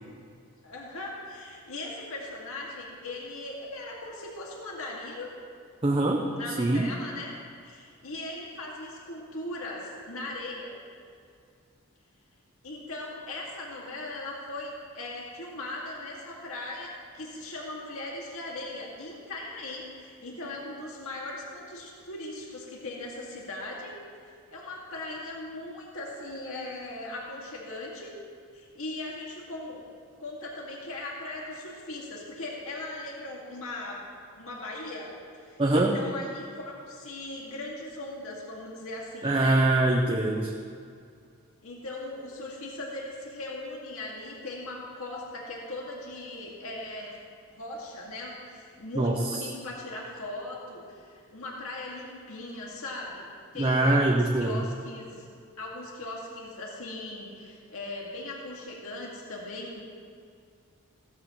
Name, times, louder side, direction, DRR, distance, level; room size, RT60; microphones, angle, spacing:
voice 1, 0.6-5.3 6.3-7.3 7.6-10.7 12.6-23.9 24.2-28.1 28.5-29.8 30.2-34.0 34.4-35.1 35.4-39.6 41.6-47.1 47.5-53.3 53.5-55.3 55.6-59.8, left 2 dB, 70° left, -3 dB, 2.2 m, -39 dB
voice 2, 5.8-6.3 6.6-6.9 35.6-36.0 39.2-40.5 49.0-49.4 53.6-54.7, right 2 dB, 25° right, 0 dB, 0.8 m, -23 dB
16.0 x 14.0 x 3.1 m, 2.3 s
head